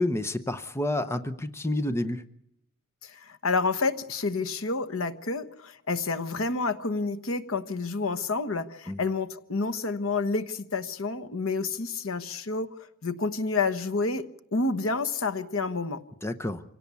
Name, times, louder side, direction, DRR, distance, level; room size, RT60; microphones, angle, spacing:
voice 1, 0.0-2.2 8.9-9.0 16.2-16.6, left 1 dB, 10° left, 11 dB, 0.8 m, -29 dB
voice 2, 3.0-12.7 13.0-14.2 14.5-16.0, left 3 dB, 80° left, 9 dB, 1.2 m, -29 dB
26.0 x 17.5 x 8.3 m, 0.74 s
head